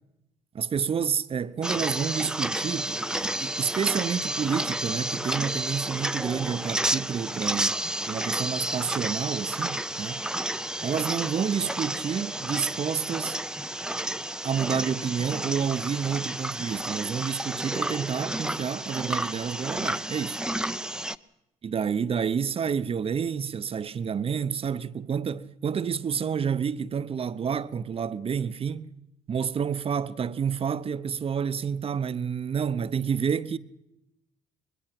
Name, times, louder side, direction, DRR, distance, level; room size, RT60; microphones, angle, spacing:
voice 1, 0.5-10.2 10.8-13.4 14.4-20.4 21.6-28.9 29.3-33.6, right 7 dB, 40° right, 0.8 m, -29 dB
sound 1, 1.6-21.2, right 1 dB, 5° right, 0.6 m, -31 dB
22.0 x 21.0 x 6.0 m
hypercardioid pair, 55°, 15 cm